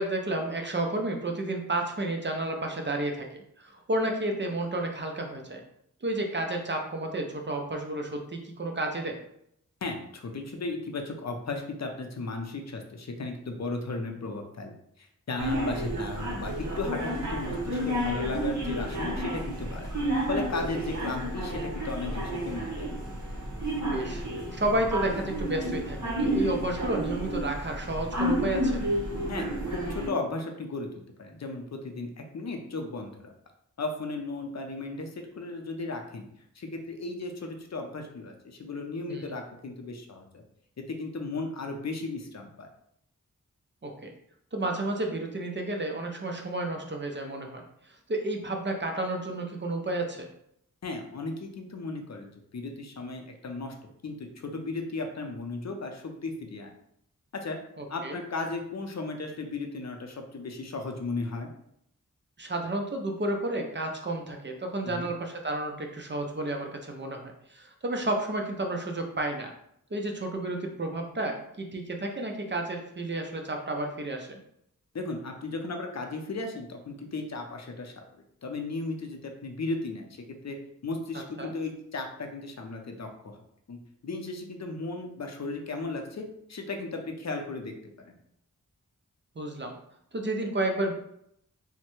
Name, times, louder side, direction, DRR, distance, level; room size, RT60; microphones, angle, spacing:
voice 1, 0.0-3.2 3.6-5.6 6.0-9.2 23.8-24.2 24.5-28.8 39.1-39.2 43.8-44.1 44.5-47.6 48.1-50.3 57.8-58.2 62.4-69.5 69.9-74.4 81.4-81.5 89.4-89.7 90.1-90.9, right 1 dB, 35° right, 2 dB, 0.5 m, -31 dB
voice 2, 9.8-19.9 20.3-22.9 29.3-33.3 33.8-36.3 36.6-40.4 40.9-42.7 50.8-56.7 57.3-57.6 57.9-61.5 64.8-65.1 74.9-78.0 78.4-80.6 80.8-83.4 83.7-87.7 88.0-88.1, left 3 dB, 55° left, 4 dB, 0.5 m, -35 dB
sound 1, 15.4-30.1, right 1 dB, 60° right, 0.9 m, -31 dB
3.1 x 2.1 x 3.0 m, 0.73 s
wide cardioid pair, 50°, 33 cm